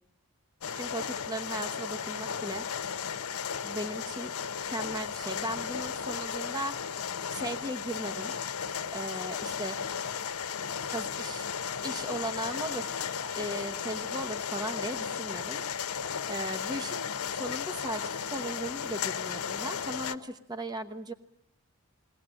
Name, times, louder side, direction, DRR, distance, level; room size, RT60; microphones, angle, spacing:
sound 1, 0.6-20.1, left 7 dB, 80° left, 0.9 m, -35 dB
voice 1, 0.7-2.7 3.6-4.3 4.7-6.7 7.3-8.3 8.9-9.8 10.9-11.5 11.8-12.9 13.4-15.6 16.3-21.1, right 1 dB, 20° right, 8 dB, 1.0 m, -37 dB
21.5 x 18.0 x 8.9 m, 0.79 s
head